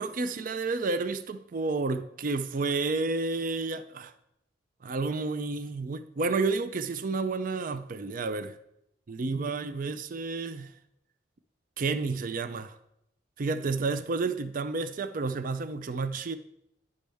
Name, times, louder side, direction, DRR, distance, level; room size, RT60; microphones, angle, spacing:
voice 1, 0.0-4.1 4.8-8.6 9.1-10.7 11.8-12.8 13.4-16.4, right 3 dB, 45° right, 0.4 m, -30 dB
10.5 x 5.3 x 3.4 m
head